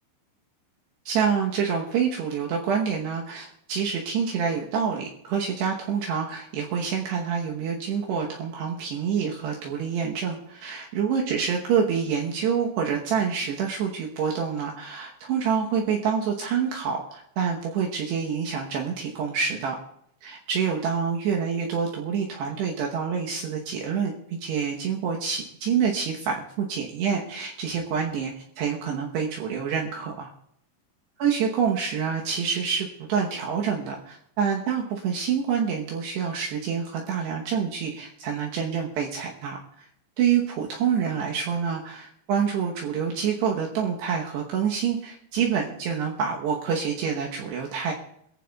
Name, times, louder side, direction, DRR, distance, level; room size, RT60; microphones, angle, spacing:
voice 1, 1.1-19.8 20.2-30.3 31.2-39.6 40.2-47.9, right 7 dB, 70° right, -1 dB, 3.0 m, -27 dB
23.5 x 14.5 x 2.3 m, 0.73 s
omnidirectional pair, 5.4 m